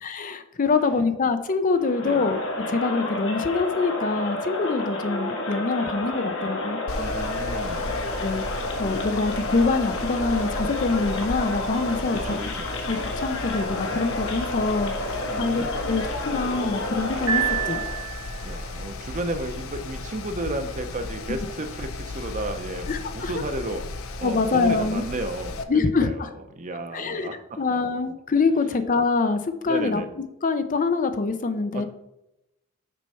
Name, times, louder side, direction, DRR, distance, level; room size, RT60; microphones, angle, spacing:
voice 1, 0.0-2.4 2.7-6.8 8.0-8.5 8.8-12.4 12.9-14.9 15.4-17.8 22.9-23.3 24.2-25.0 25.7-26.3 26.9-30.0 30.4-31.8, left 4 dB, 40° left, 9 dB, 0.5 m, -25 dB
Crowd, 1.8-18.1, left 2 dB, 60° left, 1.2 m, -30 dB
Mechanical fan, 6.9-25.6, left 2 dB, 80° left, 0.6 m, -35 dB
voice 2, 7.0-7.9 12.1-12.7 15.3-15.8 18.4-22.9 23.1-23.8 24.2-26.3 26.5-27.8 29.7-30.1 31.7-31.8, right 1 dB, 35° right, 8 dB, 0.6 m, -33 dB
Piano, 17.3-18.6, right 10 dB, 80° right, 1.6 m, -27 dB
6.2 x 4.4 x 5.5 m, 0.87 s
head